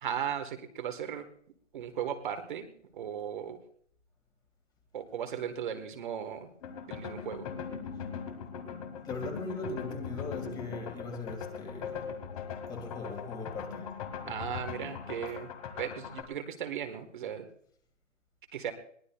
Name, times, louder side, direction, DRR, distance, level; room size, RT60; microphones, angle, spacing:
voice 1, 0.0-1.3 1.7-3.6 4.9-6.5 6.9-7.5 14.3-15.5 15.8-17.5 18.5-18.7, right 8 dB, 40° right, 6 dB, 1.4 m, -36 dB
sound 1, 6.6-16.2, left 6 dB, 30° left, 1.8 m, -40 dB
voice 2, 8.7-12.1 12.7-14.0, left 3 dB, 10° left, 4 dB, 2.0 m, -40 dB
22.0 x 18.0 x 2.3 m, 0.63 s
hypercardioid pair, 150°, 38 cm